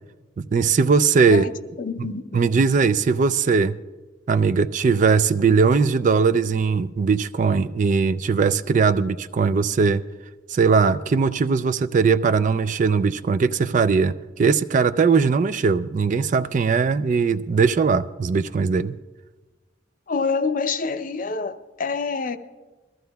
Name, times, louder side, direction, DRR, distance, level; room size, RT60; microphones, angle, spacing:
voice 1, 0.4-1.5 2.3-3.8 4.3-10.0 10.5-19.0, right 5 dB, 40° right, 0.3 m, -20 dB
voice 2, 1.3-2.4 20.1-22.4, left 4 dB, 45° left, 0.5 m, -27 dB
22.0 x 14.0 x 2.3 m
head